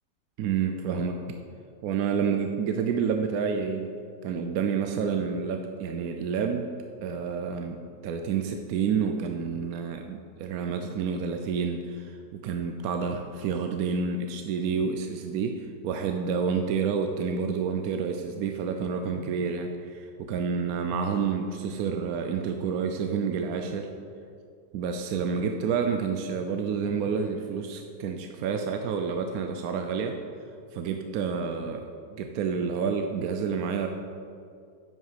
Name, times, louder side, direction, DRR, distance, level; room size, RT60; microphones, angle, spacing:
voice 1, 0.4-1.2 1.8-3.9 4.2-6.7 7.0-23.9 24.7-30.2 30.7-33.9, right 6 dB, 70° right, 5 dB, 1.0 m, -29 dB
9.2 x 5.7 x 5.8 m, 2.4 s
omnidirectional pair, 1.8 m